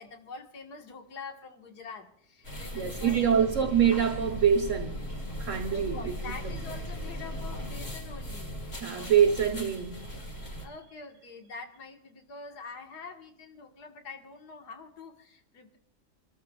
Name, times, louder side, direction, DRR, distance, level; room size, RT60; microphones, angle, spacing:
voice 1, 0.0-3.7 5.4-9.4 10.6-15.8, left 4 dB, 75° left, 2.1 m, -45 dB
sound 1, 2.4-10.7, equal, 40° left, 2.7 m, -38 dB
voice 2, 2.7-5.0 5.4-6.3 8.8-10.2, right 8 dB, 55° right, 1.2 m, -25 dB
28.5 x 14.0 x 2.3 m
omnidirectional pair, 1.8 m